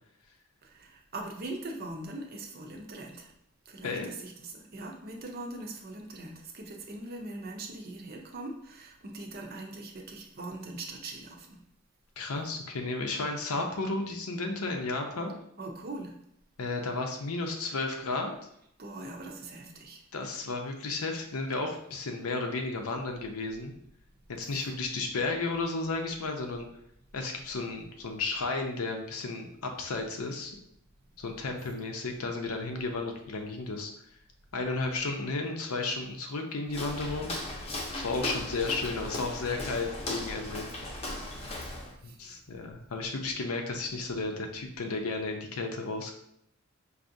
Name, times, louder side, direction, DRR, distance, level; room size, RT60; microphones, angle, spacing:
voice 1, 0.6-3.3 3.7-11.6 15.6-16.1 18.8-20.0 24.4-24.6 42.0-42.4, right 2 dB, 45° right, 2 dB, 0.6 m, -41 dB
voice 2, 12.2-15.3 16.6-18.3 20.1-23.7 24.3-26.7 27.1-30.5 31.2-33.9 34.5-37.3 37.9-40.7 42.0-46.1, left 3 dB, 90° left, 3 dB, 0.7 m, -33 dB
Walk footsteps, 36.7-42.0, left 1 dB, 30° left, 0.7 m, -37 dB
4.8 x 2.7 x 2.6 m, 0.73 s
head